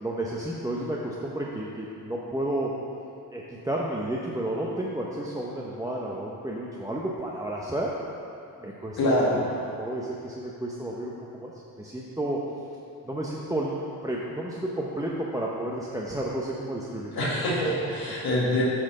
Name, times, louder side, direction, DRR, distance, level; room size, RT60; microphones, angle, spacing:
voice 1, 0.0-2.8 3.3-8.0 8.6-9.5 9.8-11.1 11.4-11.5 11.8-12.4 13.0-17.1, right 1 dB, 10° right, -4 dB, 0.8 m, -31 dB
voice 2, 9.0-9.4 16.9-18.6, left 1 dB, 85° left, -7 dB, 1.8 m, -25 dB
8.6 x 4.2 x 6.5 m, 2.6 s
cardioid pair, 75°, 36 cm